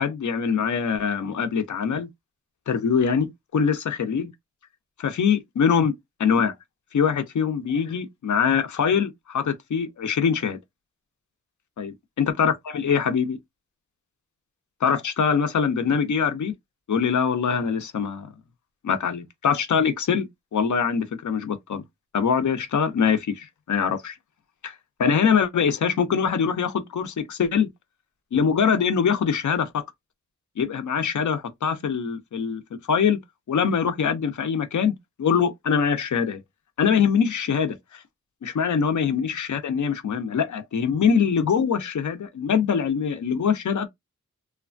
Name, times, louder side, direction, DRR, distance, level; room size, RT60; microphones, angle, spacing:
voice 1, 0.0-2.1 2.7-4.3 5.0-5.9 6.2-6.5 6.9-10.6 11.8-13.4 14.8-16.5 16.9-18.3 18.8-21.8 22.1-24.2 24.6-24.7 25.0-27.7 28.3-29.8 30.6-32.6 32.9-33.2 33.5-34.9 35.2-36.4 36.8-38.0 38.4-43.9, left 6 dB, 80° left, 0.7 m, -23 dB
3.2 x 2.2 x 2.4 m
wide cardioid pair, 140°, 29 cm